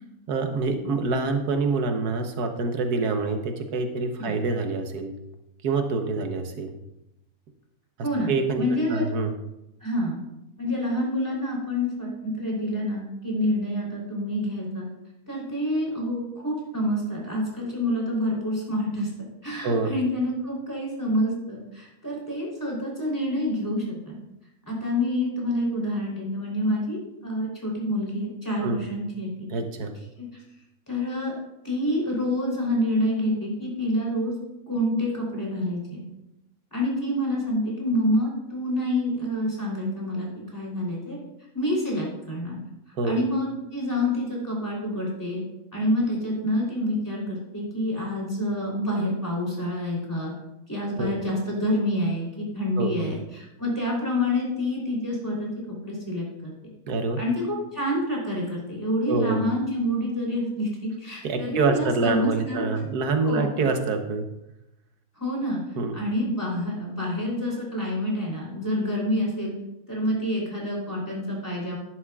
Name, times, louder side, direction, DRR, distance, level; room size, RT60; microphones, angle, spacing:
voice 1, 0.3-5.1 5.6-6.7 8.3-9.4 19.6-19.9 28.6-28.8 29.5-29.9 43.0-43.2 51.0-51.1 52.8-53.1 56.9-57.2 59.1-59.4 61.2-64.2 65.8-66.0, right 3 dB, 80° right, 6 dB, 1.5 m, -26 dB
voice 2, 8.0-9.1 9.8-10.2 10.6-14.9 15.3-19.1 19.4-24.2 24.7-29.5 30.2-30.3 30.9-31.3 31.6-34.3 34.7-36.0 36.7-41.2 41.5-42.6 43.0-45.4 45.7-50.3 50.7-56.5 57.2-62.7 63.2-63.5 65.2-65.6 65.9-69.5 69.9-71.8, left 1 dB, 10° left, -3 dB, 3.3 m, -27 dB
11.0 x 11.0 x 2.4 m, 0.89 s
omnidirectional pair, 1.6 m